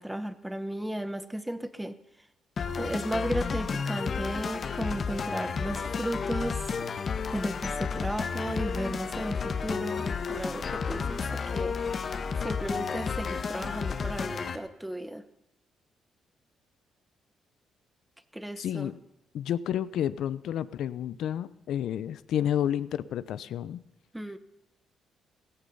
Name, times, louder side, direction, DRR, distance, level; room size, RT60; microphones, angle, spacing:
voice 1, 0.0-1.9 2.8-6.6 7.3-11.8 12.3-15.2 18.3-18.9 24.1-24.4, right 1 dB, 5° right, 12 dB, 1.2 m, -35 dB
sound 1, 2.6-14.6, left 5 dB, 45° left, 1.4 m, -32 dB
voice 2, 18.6-19.0 19.3-23.8, left 10 dB, 75° left, 16 dB, 0.8 m, -30 dB
17.0 x 15.0 x 5.6 m, 0.89 s
cardioid pair, 90°, 0 cm